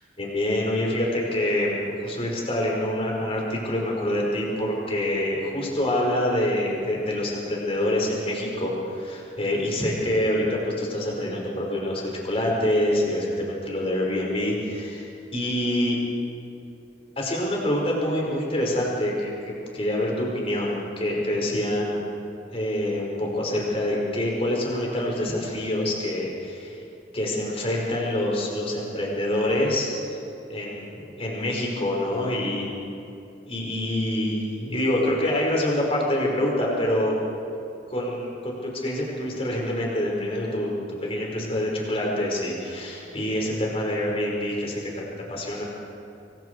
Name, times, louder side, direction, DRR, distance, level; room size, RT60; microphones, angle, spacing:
voice 1, 0.2-15.1 15.3-16.0 17.2-22.0 22.5-26.8 27.1-29.9 30.5-32.7 33.5-37.2 37.9-40.7 41.0-45.6, left 1 dB, 30° left, -2 dB, 5.4 m, -26 dB
26.0 x 23.5 x 4.8 m, 2.7 s
head